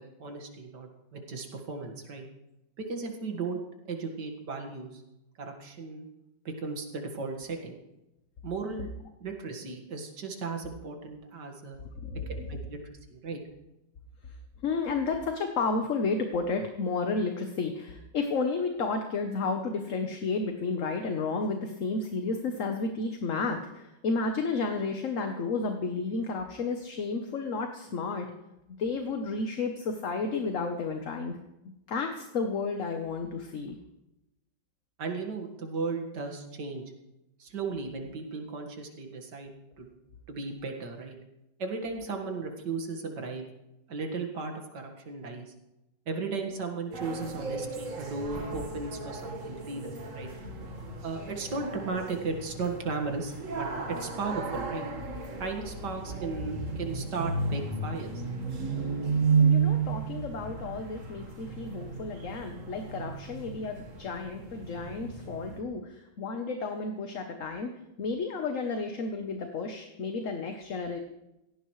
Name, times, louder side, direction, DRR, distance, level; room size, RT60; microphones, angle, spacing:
voice 1, 0.0-2.2 2.8-3.6 3.9-5.0 5.4-6.1 6.5-7.8 8.4-8.9 9.2-11.8 12.3-12.8 13.1-13.4 35.0-36.8 37.4-39.9 40.3-41.2 41.6-43.4 43.9-45.5 46.1-50.3 51.0-54.8 55.4-58.2, right 4 dB, 65° right, 3 dB, 2.3 m, -36 dB
voice 2, 11.9-12.5 14.6-28.3 28.8-31.4 31.9-33.8 59.4-71.0, left 4 dB, 50° left, 5 dB, 1.2 m, -32 dB
sound 1, 46.9-65.6, right 5 dB, 45° right, 1.8 m, -33 dB
17.5 x 15.0 x 3.2 m, 0.92 s
omnidirectional pair, 2.0 m